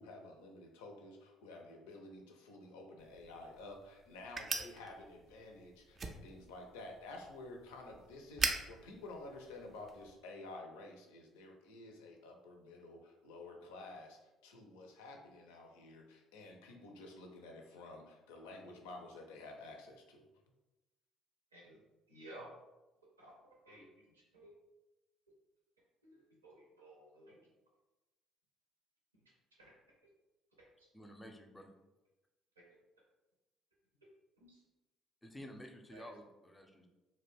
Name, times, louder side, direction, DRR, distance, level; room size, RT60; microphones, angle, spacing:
voice 1, 0.0-20.3, left 2 dB, 75° left, 2 dB, 0.4 m, -51 dB
sound 1, 3.0-10.1, right 4 dB, 40° right, 0.4 m, -43 dB
voice 2, 21.5-21.8 22.1-22.5 23.2-23.3 23.7-24.6 26.0-27.5 29.1-29.3 29.6-29.8 30.6-30.9 32.6-32.8 34.4-34.6 35.9-36.1, right 1 dB, 90° right, -4 dB, 0.6 m, -56 dB
voice 3, 30.9-31.7 35.2-36.9, equal, 15° left, 4 dB, 0.5 m, -51 dB
2.5 x 2.2 x 3.3 m, 1.1 s
figure-of-eight pair, 50°, 0 cm